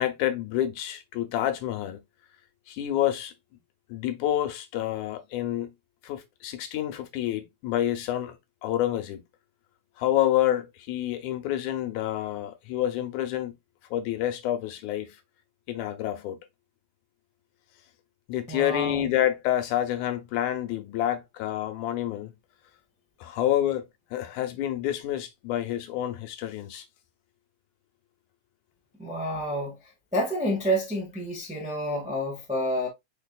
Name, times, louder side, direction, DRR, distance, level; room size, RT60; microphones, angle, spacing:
voice 1, 0.0-2.0 2.7-3.3 3.9-5.7 6.0-8.4 8.6-9.2 10.0-13.6 13.9-15.2 15.7-16.4 18.3-22.3 23.2-23.9 24.1-26.8, left 12 dB, 85° left, 2.2 m, -28 dB
voice 2, 18.5-19.1 29.0-29.8 30.1-32.9, equal, 5° right, 0.5 m, -29 dB
4.9 x 4.7 x 2.3 m
omnidirectional pair, 3.4 m